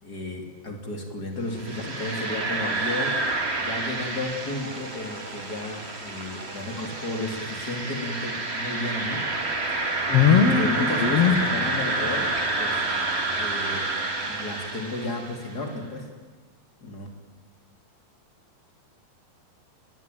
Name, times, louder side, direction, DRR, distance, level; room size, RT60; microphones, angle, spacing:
voice 1, 0.0-3.2 3.6-9.3 9.7-9.8 10.3-12.8 13.4-13.9 14.3-16.1 16.8-17.1, left 2 dB, 25° left, 4 dB, 2.9 m, -33 dB
sound 1, 1.5-15.5, right 2 dB, 25° right, 1.6 m, -29 dB
sound 2, 4.6-5.4 6.4-7.1 9.1-9.9 10.9-11.6 13.6-14.4, right 2 dB, 80° right, 5.7 m, -45 dB
voice 2, 10.1-11.4, left 7 dB, 50° left, 4 dB, 1.9 m, -19 dB
21.5 x 20.5 x 9.2 m, 1.4 s
omnidirectional pair, 4.6 m